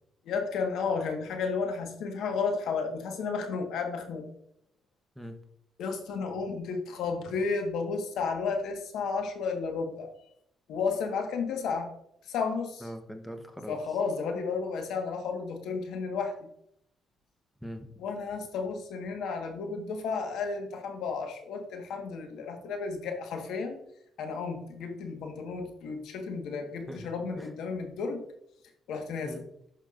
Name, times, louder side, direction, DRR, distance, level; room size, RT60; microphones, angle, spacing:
voice 1, 0.3-4.3 5.8-10.1 10.7-11.9 12.3-12.8 13.7-16.5 18.0-23.7 24.2-28.2 28.9-29.5, left 5 dB, 80° left, 4 dB, 1.4 m, -32 dB
voice 2, 12.8-13.8 17.6-17.9 26.9-27.1 27.4-27.5 29.2-29.4, equal, ahead, 6 dB, 0.9 m, -41 dB
11.5 x 5.9 x 2.5 m, 0.72 s
cardioid pair, 90°, 0 cm